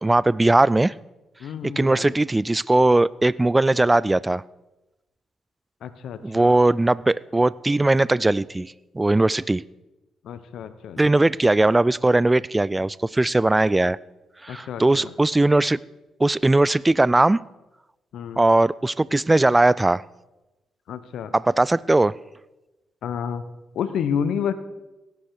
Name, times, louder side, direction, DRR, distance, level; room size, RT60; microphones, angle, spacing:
voice 1, 0.0-0.9 1.8-4.4 6.2-9.6 11.0-14.0 14.4-15.8 16.2-17.4 18.4-20.0 21.3-22.1, right 2 dB, 20° right, 22 dB, 0.3 m, -19 dB
voice 2, 1.4-2.2 5.8-6.6 10.2-11.3 14.5-15.1 18.1-18.4 20.9-21.3 23.0-23.4 23.7-24.5, left 8 dB, 65° left, 13 dB, 0.9 m, -30 dB
17.0 x 9.4 x 4.7 m, 1.0 s
hypercardioid pair, 40°, 0 cm